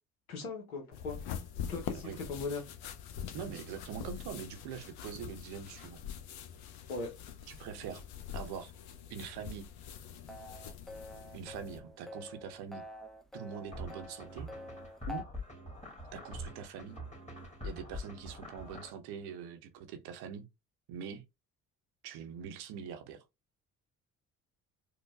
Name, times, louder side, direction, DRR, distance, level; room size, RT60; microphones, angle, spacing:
voice 1, 0.3-1.2 1.7-2.6 6.9-7.1, left 3 dB, 90° left, 0.9 m, -38 dB
sound 1, 0.9-11.8, left 9 dB, 65° left, 0.7 m, -44 dB
voice 2, 3.3-6.0 7.5-8.0 8.3-8.7 9.1-9.7 11.3-12.8 13.3-14.5 15.1-15.3 16.1-17.0 17.6-20.5 20.9-21.2 22.0-23.2, right 8 dB, 65° right, 0.7 m, -43 dB
sound 2, 10.3-15.2, left 2 dB, ahead, 0.3 m, -47 dB
sound 3, 13.7-18.9, left 1 dB, 15° left, 1.5 m, -44 dB
4.7 x 2.2 x 2.2 m
hypercardioid pair, 45°, 42 cm